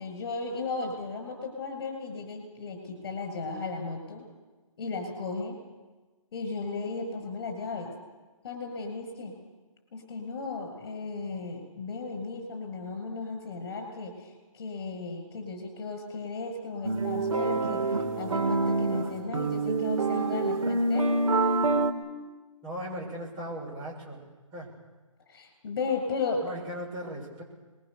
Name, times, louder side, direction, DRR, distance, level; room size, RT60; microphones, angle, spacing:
voice 1, 0.0-4.2 4.8-5.6 6.3-7.9 8.4-9.3 9.9-21.2 25.3-26.4, left 4 dB, 45° left, 4 dB, 7.6 m, -35 dB
sound 1, 16.8-21.9, right 3 dB, 80° right, 3.6 m, -26 dB
voice 2, 22.6-24.2 24.5-24.7 26.4-27.4, equal, 20° right, -4 dB, 6.6 m, -37 dB
25.0 x 22.0 x 7.0 m, 1.3 s
hypercardioid pair, 160°, 17 cm